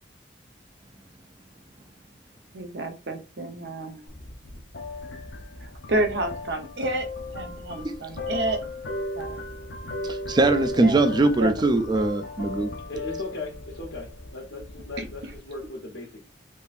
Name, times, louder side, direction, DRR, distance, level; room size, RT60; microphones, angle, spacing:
voice 1, 2.5-4.1 5.6-8.6 9.2-9.4 10.8-11.7, right 2 dB, 70° right, 0.8 m, -30 dB
sound 1, 4.1-15.7, left 2 dB, 70° left, 0.6 m, -36 dB
voice 2, 10.0-12.7, right 2 dB, 25° right, 0.4 m, -22 dB
voice 3, 12.9-16.2, left 2 dB, 90° left, 1.0 m, -37 dB
3.7 x 2.7 x 2.5 m
head